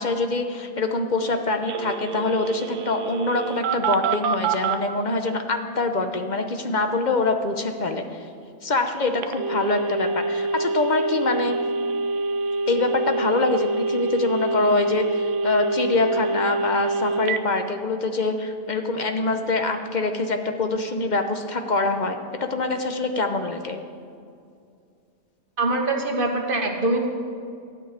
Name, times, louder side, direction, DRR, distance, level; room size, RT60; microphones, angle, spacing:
voice 1, 0.0-8.0 8.6-11.6 12.7-23.8, left 3 dB, 40° left, 6 dB, 0.7 m, -24 dB
Telephone, 1.7-4.8 9.2-17.4, right 3 dB, 65° right, 1.0 m, -26 dB
voice 2, 25.6-27.1, right 2 dB, 40° right, 2 dB, 1.3 m, -23 dB
12.5 x 6.2 x 9.3 m, 2.4 s
omnidirectional pair, 1.5 m